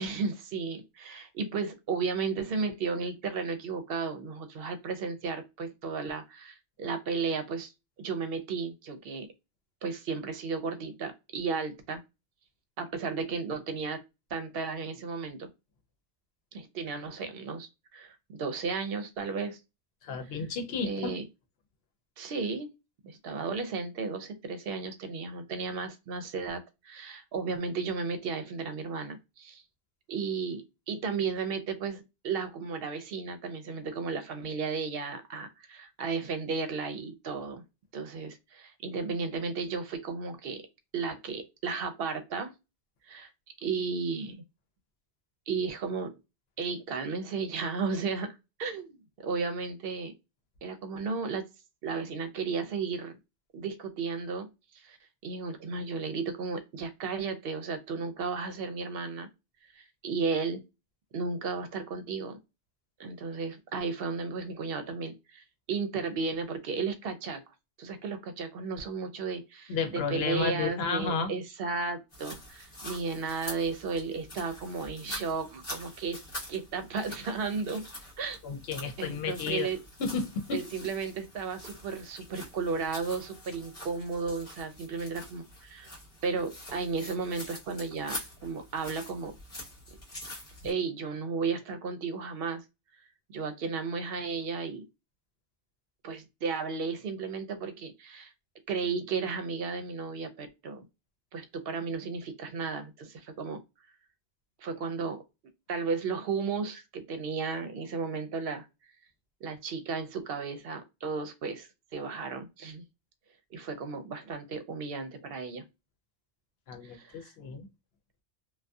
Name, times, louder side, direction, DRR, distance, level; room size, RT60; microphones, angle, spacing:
voice 1, 0.0-7.7 8.0-9.3 9.8-12.0 12.8-14.0 14.3-15.5 16.5-19.6 20.3-20.4 20.8-21.2 22.2-22.7 23.0-29.6 30.1-37.6 37.9-40.6 40.9-42.5 43.0-43.3 43.6-44.4 45.5-46.1 46.6-50.1 50.6-51.4 51.8-53.2 53.5-54.5 54.7-55.0 55.2-59.3 59.7-60.6 61.1-62.4 63.0-67.4 67.8-76.2 76.5-77.8 78.2-78.4 79.0-79.8 80.5-85.9 86.2-89.3 90.6-92.6 93.3-94.8 96.0-98.3 98.7-100.8 101.3-103.6 104.6-105.2 105.7-108.7 109.4-112.8 113.5-115.6 116.8-117.3, right 5 dB, 70° right, 0.8 m, -34 dB
voice 2, 20.0-21.1 69.7-71.3 78.4-79.7 80.0-80.6 116.7-117.7, left 5 dB, 75° left, 0.8 m, -32 dB
sound 1, 72.1-90.7, left 1 dB, 35° left, 1.2 m, -45 dB
2.6 x 2.2 x 2.3 m
omnidirectional pair, 1.0 m